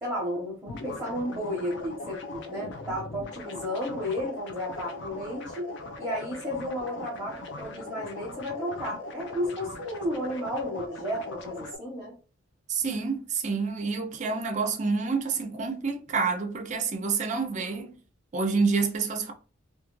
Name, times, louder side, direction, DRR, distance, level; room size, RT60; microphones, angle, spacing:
voice 1, 0.0-5.7 6.0-12.1, equal, 10° right, 0.8 m, -33 dB
sound 1, 0.7-11.8, left 2 dB, 60° left, 0.4 m, -40 dB
voice 2, 12.7-18.0 18.3-19.3, right 4 dB, 35° right, 0.4 m, -28 dB
2.4 x 2.3 x 3.0 m
head